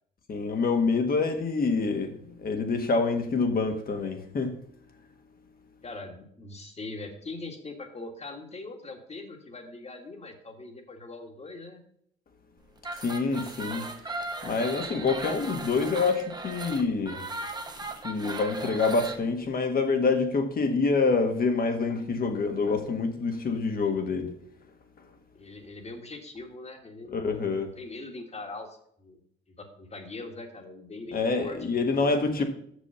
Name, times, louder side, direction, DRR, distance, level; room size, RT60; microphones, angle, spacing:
voice 1, 0.3-4.5 13.0-13.8 14.4-17.3 18.0-24.3 27.1-27.7 31.1-32.4, left 4 dB, 50° left, 6 dB, 1.5 m, -26 dB
voice 2, 5.8-11.8 25.3-27.4 27.8-29.2 29.6-32.1 32.4-32.5, left 3 dB, 35° left, 5 dB, 1.8 m, -42 dB
sound 1, 12.8-19.2, right 2 dB, 20° right, 1.1 m, -37 dB
6.4 x 6.3 x 5.5 m, 0.68 s
cardioid pair, 90°, 20 cm